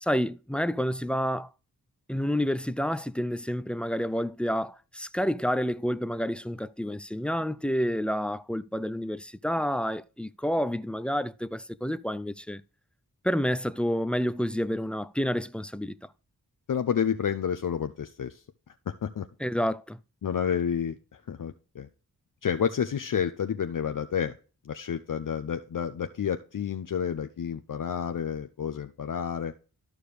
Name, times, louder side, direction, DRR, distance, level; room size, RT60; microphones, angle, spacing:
voice 1, 0.0-1.5 2.1-12.6 13.2-16.0 19.4-20.0, equal, 5° left, 0.4 m, -29 dB
voice 2, 16.7-18.4 18.9-19.3 20.2-20.9 21.3-21.9 22.4-24.4 24.6-29.5, left 8 dB, 60° left, 0.6 m, -30 dB
13.0 x 5.0 x 3.3 m
cardioid pair, 50°, 37 cm